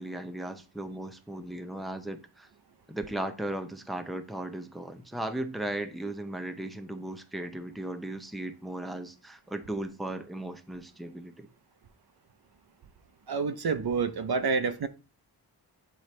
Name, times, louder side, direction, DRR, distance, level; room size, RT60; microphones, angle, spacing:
voice 1, 0.0-2.5 2.9-11.5, right 1 dB, ahead, 0.7 m, -36 dB
voice 2, 13.3-14.9, right 5 dB, 65° right, 0.7 m, -28 dB
8.1 x 3.9 x 3.2 m
wide cardioid pair, 80°, 41 cm